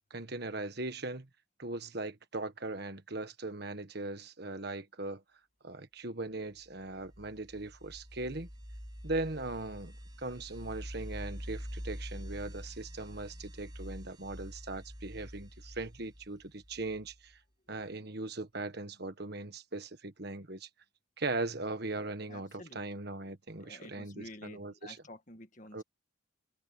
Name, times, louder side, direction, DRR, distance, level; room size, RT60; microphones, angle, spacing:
voice 1, 0.1-1.3 1.6-5.2 5.6-8.5 9.0-17.4 17.7-20.7 21.2-25.0 25.7-25.8, right 2 dB, 50° right, 1.5 m, -39 dB
sound 1, 6.8-17.3, equal, 20° right, 4.6 m, -46 dB
voice 2, 22.3-22.8 23.6-25.8, left 1 dB, 40° left, 1.9 m, -50 dB
head